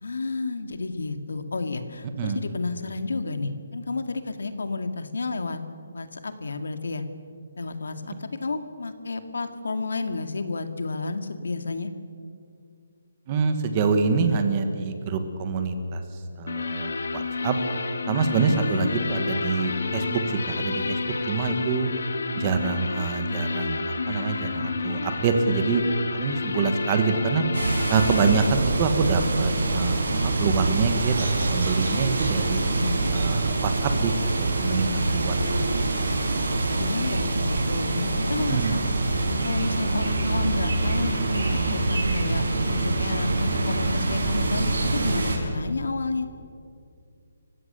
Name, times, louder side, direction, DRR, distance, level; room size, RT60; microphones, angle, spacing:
voice 1, 0.0-5.6 5.9-7.0 7.6-11.9 18.5-18.9 32.7-33.1 36.7-38.8 39.4-42.4 42.7-46.3, left 3 dB, 85° left, 9 dB, 2.1 m, -31 dB
voice 2, 13.3-16.0 16.4-17.5 18.1-20.2 20.5-21.0 21.3-21.9 22.4-23.8 24.1-25.8 26.1-27.4 27.9-31.2 31.5-32.6 33.1-35.5 38.5-38.8, right 5 dB, 20° right, 7 dB, 1.3 m, -25 dB
sound 1, 16.5-28.5, left 4 dB, 60° left, 1.7 m, -30 dB
sound 2, 27.5-45.4, right 2 dB, 85° right, 5.4 m, -25 dB
sound 3, 38.4-45.4, left 2 dB, 20° left, 1.6 m, -41 dB
29.0 x 16.0 x 6.8 m, 2.4 s
hypercardioid pair, 180°, 0 cm